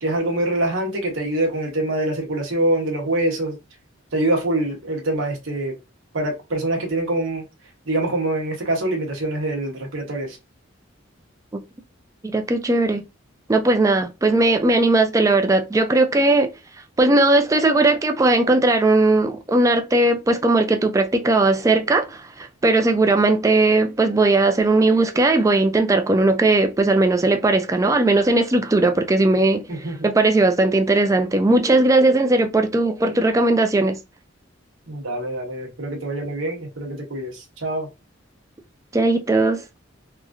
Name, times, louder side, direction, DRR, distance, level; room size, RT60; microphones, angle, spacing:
voice 1, 0.0-3.6 4.1-5.7 6.1-7.4 7.9-10.4 29.7-30.1 34.9-37.9, right 1 dB, 80° right, 1.0 m, -24 dB
voice 2, 12.2-13.0 13.5-16.5 17.0-34.0 38.9-39.6, right 2 dB, 15° right, 0.3 m, -18 dB
3.0 x 2.4 x 2.5 m
head